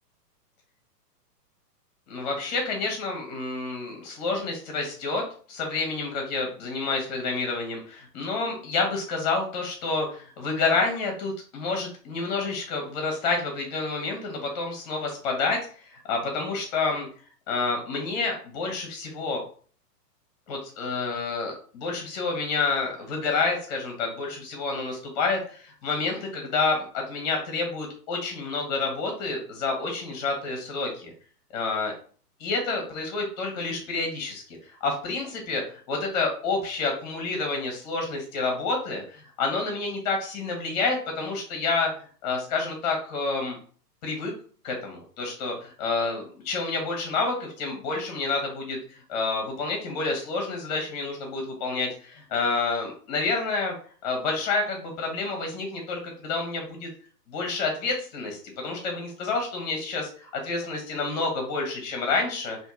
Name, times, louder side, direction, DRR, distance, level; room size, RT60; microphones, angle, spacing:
voice 1, 2.1-17.1 17.5-19.4 20.5-31.1 31.5-31.9 32.4-34.4 34.8-41.9 42.2-43.6 44.0-44.3 44.6-53.7 54.0-56.9 57.3-62.6, left 3 dB, 25° left, 2 dB, 0.9 m, -29 dB
2.7 x 2.7 x 3.6 m, 0.43 s
hypercardioid pair, 155°, 49 cm